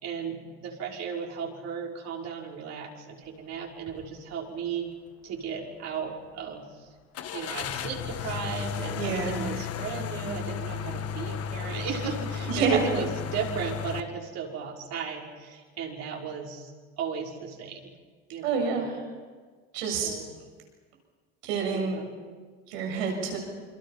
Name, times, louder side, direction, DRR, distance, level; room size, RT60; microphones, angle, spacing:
voice 1, 0.0-4.9 5.2-6.9 7.3-17.9 18.3-18.7 19.9-20.3 21.7-22.3, right 6 dB, 60° right, -1 dB, 5.7 m, -35 dB
sound 1, 3.9-4.1 4.6-4.7 7.1-14.0, left 7 dB, 50° left, 1.7 m, -34 dB
voice 2, 9.0-9.5 12.5-12.8 18.4-19.0 19.7-20.1 21.4-22.0 22.7-23.4, right 5 dB, 85° right, 1 dB, 7.5 m, -28 dB
29.0 x 24.0 x 5.8 m, 1.5 s
supercardioid pair, 80°, 30 cm